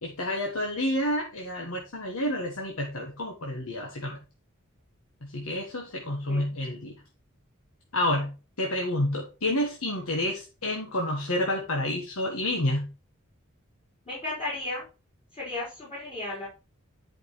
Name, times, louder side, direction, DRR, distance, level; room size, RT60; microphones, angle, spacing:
voice 1, 0.0-4.2 5.2-6.9 7.9-8.3 8.6-12.8, left 1 dB, 85° left, 1 dB, 1.5 m, -29 dB
voice 2, 14.0-14.8 15.3-16.5, left 2 dB, 30° left, -7 dB, 4.7 m, -34 dB
10.5 x 5.3 x 3.2 m, 0.31 s
head